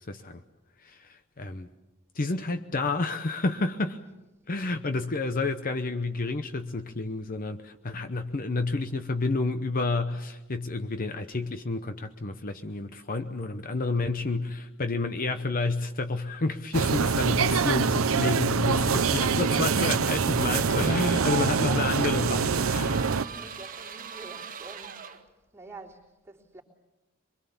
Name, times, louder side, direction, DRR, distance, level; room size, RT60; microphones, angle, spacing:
voice 1, 0.1-0.4 0.8-1.7 2.1-4.0 4.5-23.0, left 3 dB, 40° left, 8 dB, 0.9 m, -30 dB
sound 1, 16.7-23.3, right 5 dB, 75° right, 0.7 m, -25 dB
sound 2, 18.6-25.2, right 7 dB, 40° right, 1.4 m, -40 dB
voice 2, 20.8-26.6, right 3 dB, 10° right, -3 dB, 3.5 m, -47 dB
24.0 x 23.5 x 7.1 m, 1.0 s
head